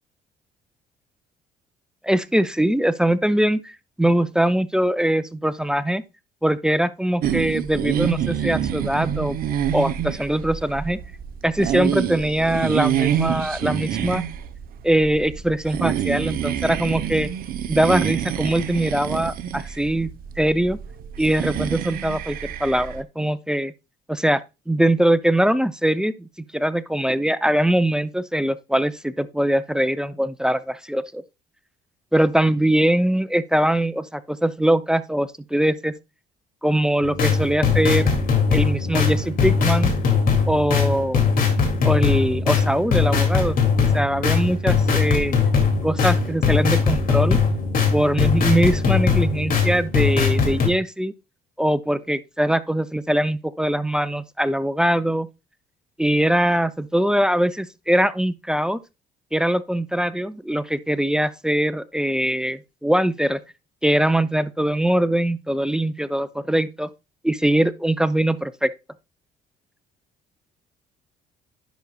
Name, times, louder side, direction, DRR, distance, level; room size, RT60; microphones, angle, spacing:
voice 1, 2.0-3.7 4.0-6.0 6.4-9.4 9.7-11.0 11.4-14.2 14.8-17.3 17.7-20.1 20.4-20.8 21.2-23.7 24.1-24.4 24.7-31.2 32.1-35.9 36.6-38.1 38.5-39.9 40.5-41.2 41.8-43.6 43.9-45.3 45.8-47.4 47.9-51.1 51.6-55.3 56.0-58.8 59.3-63.4 63.8-66.9 67.2-68.7, right 1 dB, 5° right, 0.4 m, -22 dB
sound 1, 7.2-23.0, right 10 dB, 60° right, 0.8 m, -27 dB
sound 2, 37.0-50.7, left 5 dB, 55° left, 2.3 m, -20 dB
10.5 x 6.1 x 2.2 m
cardioid pair, 110°, 17 cm